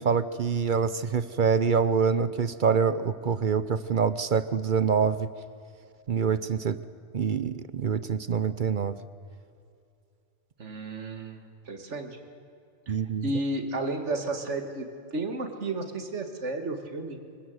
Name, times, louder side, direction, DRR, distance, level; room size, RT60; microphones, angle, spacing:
voice 1, 0.0-5.3 6.1-6.8 7.1-9.0 12.9-13.3, right 6 dB, 50° right, 14 dB, 0.7 m, -25 dB
voice 2, 10.6-12.2 12.9-13.0 13.2-14.9 15.1-17.2, right 2 dB, 70° right, 6 dB, 2.2 m, -32 dB
25.0 x 17.0 x 7.9 m, 2.5 s
omnidirectional pair, 1.3 m